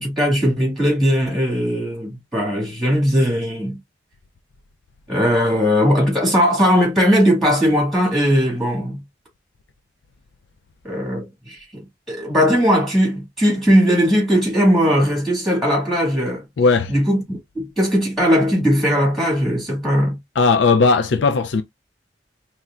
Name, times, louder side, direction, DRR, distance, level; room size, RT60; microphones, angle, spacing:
voice 1, 0.0-3.8 5.1-9.0 10.8-11.8 12.1-16.4 16.9-17.2 17.5-20.2, equal, ahead, 1.7 m, -18 dB
voice 2, 16.6-16.9 20.4-21.6, left 4 dB, 80° left, 0.4 m, -16 dB
4.3 x 3.0 x 2.4 m
head